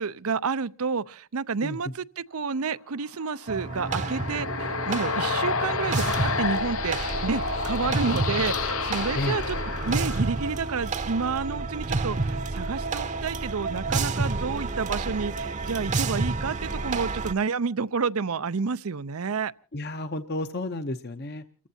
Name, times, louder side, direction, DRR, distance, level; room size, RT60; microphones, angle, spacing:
voice 1, 0.0-2.0 2.3-9.6 9.8-19.5, right 5 dB, 85° right, 0.6 m, -30 dB
voice 2, 1.6-1.9 9.1-9.4 19.7-21.7, left 1 dB, 45° left, 0.8 m, -32 dB
sound 1, 3.3-10.8, left 5 dB, 75° left, 0.9 m, -30 dB
sound 2, 3.5-17.3, right 3 dB, 35° right, 0.8 m, -30 dB
29.5 x 14.5 x 2.8 m
head